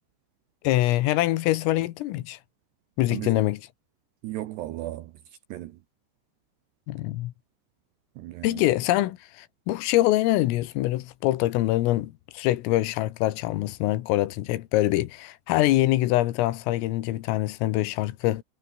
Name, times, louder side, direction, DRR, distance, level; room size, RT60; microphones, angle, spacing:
voice 1, 0.6-2.4 3.0-3.6 6.9-7.3 8.4-18.4, left 16 dB, 80° left, 3.9 m, -24 dB
voice 2, 3.1-3.4 4.2-5.1 5.5-5.8 8.2-8.6, right 15 dB, 75° right, 2.6 m, -35 dB
omnidirectional pair, 6.0 m